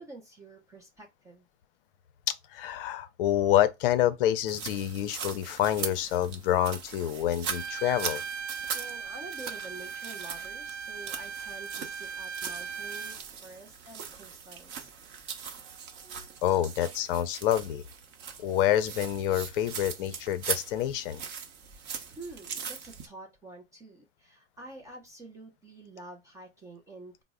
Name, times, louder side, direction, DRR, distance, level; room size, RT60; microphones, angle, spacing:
voice 1, 0.0-1.4 8.5-14.9 21.7-27.2, right 2 dB, 10° right, 0.3 m, -48 dB
voice 2, 2.5-8.2 16.4-17.8 18.4-21.2, left 11 dB, 50° left, 0.5 m, -27 dB
sound 1, 4.5-23.1, right 7 dB, 30° right, 0.7 m, -40 dB
Bowed string instrument, 7.4-13.2, right 6 dB, 75° right, 0.6 m, -38 dB
3.8 x 2.0 x 3.5 m
hypercardioid pair, 125°, 35 cm